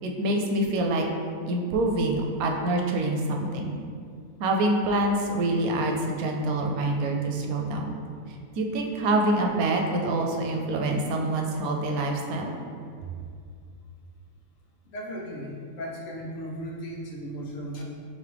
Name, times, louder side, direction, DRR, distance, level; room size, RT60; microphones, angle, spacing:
voice 1, 0.0-1.1 1.5-3.8 4.4-8.0 8.6-12.5, right 2 dB, 85° right, 1 dB, 1.0 m, -26 dB
voice 2, 14.8-17.8, equal, 70° left, -1 dB, 1.0 m, -36 dB
5.1 x 2.7 x 3.3 m, 2.2 s
omnidirectional pair, 1.5 m